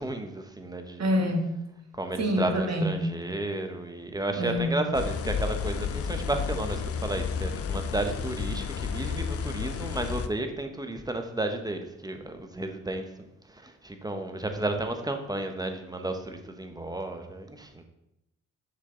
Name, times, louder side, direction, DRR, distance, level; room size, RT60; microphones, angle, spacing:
voice 1, 0.0-1.1 1.9-17.8, right 2 dB, 10° right, 5 dB, 1.2 m, -33 dB
voice 2, 1.0-1.5 2.2-3.1 4.4-4.8, equal, 50° right, 1 dB, 1.9 m, -26 dB
sound 1, 4.9-10.3, left 6 dB, 40° left, 0.6 m, -31 dB
6.4 x 5.6 x 3.9 m, 0.85 s
hypercardioid pair, 45°, 35 cm